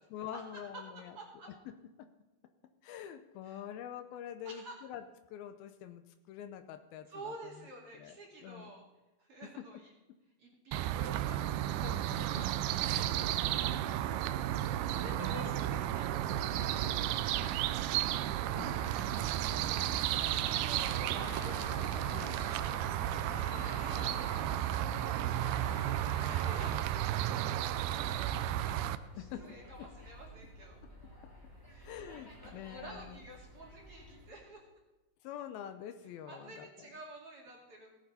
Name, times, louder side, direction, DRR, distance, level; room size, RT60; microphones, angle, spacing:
voice 1, 0.1-1.2 2.8-5.0 5.3-7.3 7.9-8.7 9.4-9.5 10.9-11.2 11.8-12.6 12.9-13.3 14.6-14.7 15.1-15.3 18.5-19.0 19.9-20.2 22.1-23.0 24.9-25.2 26.6-26.7 29.2-29.5 31.8-33.2 35.2-36.9, left 10 dB, 80° left, 8 dB, 2.5 m, -46 dB
voice 2, 0.9-1.5 3.4-3.6 4.4-4.8 7.1-8.8 9.2-9.9 10.4-11.5 13.3-18.1 19.5-20.0 20.4-21.7 23.3-26.9 27.3-30.8 31.7-31.9 32.4-34.6 36.3-38.0, right 1 dB, 40° right, -2 dB, 2.8 m, -51 dB
sound 1, 10.7-29.0, right 12 dB, 85° right, 2.4 m, -33 dB
sound 2, 16.6-34.3, left 1 dB, 10° left, 1.5 m, -53 dB
sound 3, 21.2-26.7, left 2 dB, 40° left, 2.7 m, -47 dB
17.5 x 9.3 x 4.2 m, 1.1 s
omnidirectional pair, 4.5 m